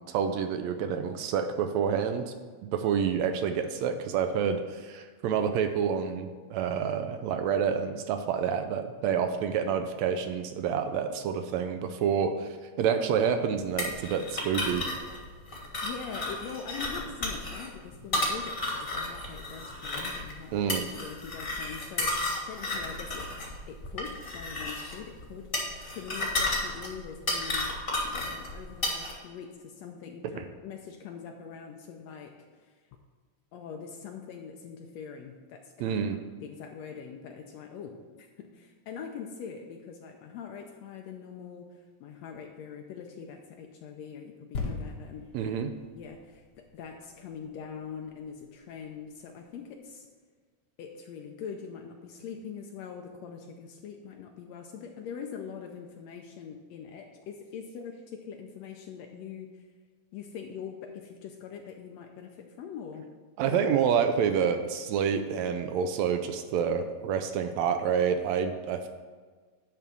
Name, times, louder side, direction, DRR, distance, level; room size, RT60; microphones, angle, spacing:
voice 1, 0.1-2.3 2.6-12.5 12.8-14.9 20.5-20.8 30.4-30.5 35.8-36.2 45.3-45.7 63.4-68.9, right 7 dB, 80° right, 7 dB, 1.7 m, -28 dB
sound 1, 13.8-29.1, left 2 dB, 30° left, 1.1 m, -33 dB
voice 2, 15.8-23.3 23.7-32.7 33.5-36.0 36.4-45.6 45.9-50.1 50.8-59.6 60.1-63.1 63.4-63.6, left 6 dB, 80° left, 3 dB, 1.7 m, -43 dB
sound 2, 44.5-48.1 48.8-48.9, left 3 dB, 55° left, 1.2 m, -40 dB
10.5 x 3.6 x 7.0 m, 1.5 s
omnidirectional pair, 3.4 m